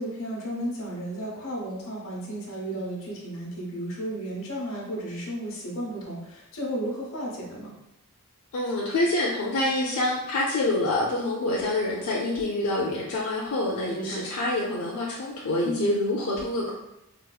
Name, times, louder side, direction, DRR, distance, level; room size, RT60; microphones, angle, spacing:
voice 1, 0.0-7.7 13.9-14.3 15.6-15.9, right 1 dB, 60° left, -3 dB, 0.9 m, -33 dB
voice 2, 8.5-16.7, left 2 dB, 85° left, -4 dB, 0.5 m, -26 dB
4.0 x 2.4 x 2.2 m, 0.86 s
head